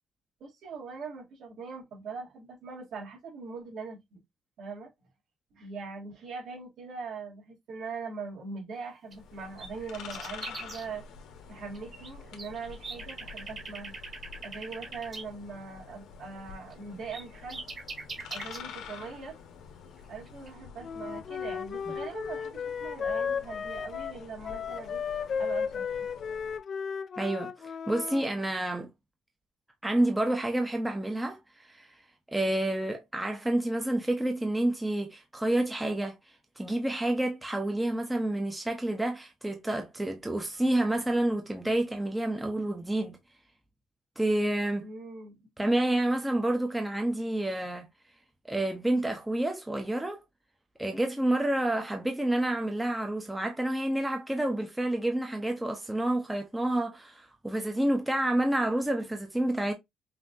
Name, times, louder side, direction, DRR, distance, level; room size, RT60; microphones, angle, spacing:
voice 1, 0.4-4.2 4.6-4.9 5.5-11.0 11.5-13.9 14.4-17.6 18.3-19.4 20.1-25.0 25.4-26.1 44.8-45.5, right 4 dB, 65° right, 2.9 m, -41 dB
sound 1, 8.9-9.1 9.4-10.8 11.5-12.1 12.4-15.2 16.7-16.8 17.1-18.6 20.0-20.1 20.3-20.5, right 3 dB, 30° right, 1.6 m, -41 dB
sound 2, 9.1-26.6, left 6 dB, 80° left, 1.1 m, -48 dB
Wind instrument woodwind instrument, 20.8-28.3, left 6 dB, 40° left, 0.3 m, -34 dB
voice 2, 27.2-28.9 29.8-31.9 32.3-36.1 36.6-43.2 44.2-44.8 45.6-47.9 48.4-50.2 50.8-59.7, right 1 dB, 5° right, 0.7 m, -29 dB
5.7 x 2.8 x 2.6 m
cardioid pair, 155°, 0 cm